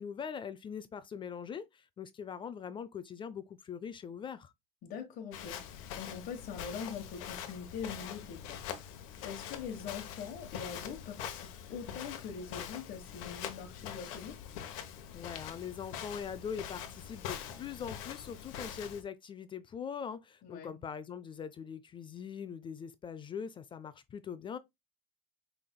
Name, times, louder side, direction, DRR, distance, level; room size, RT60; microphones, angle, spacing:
voice 1, 0.0-4.5 15.1-24.6, left 7 dB, 30° left, 0.4 m, -42 dB
voice 2, 4.8-8.6 9.0-14.4 20.4-20.8, left 6 dB, 55° left, 1.2 m, -43 dB
Walk footsteps, 5.3-19.0, left 9 dB, 80° left, 1.0 m, -44 dB
5.6 x 3.4 x 2.2 m
supercardioid pair, 105°, 17 cm